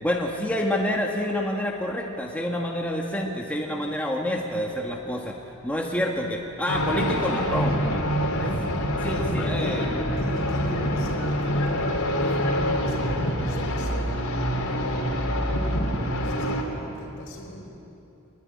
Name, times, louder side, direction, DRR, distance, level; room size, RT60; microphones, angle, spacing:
voice 1, 0.0-5.4 5.6-7.8 8.4-8.5 9.0-10.0, left 1 dB, 5° left, 1.6 m, -28 dB
sound 1, 6.7-16.6, equal, 75° left, 3.7 m, -26 dB
voice 2, 9.1-15.1 15.6-17.7, left 1 dB, 60° left, 5.1 m, -39 dB
24.0 x 22.5 x 9.9 m
head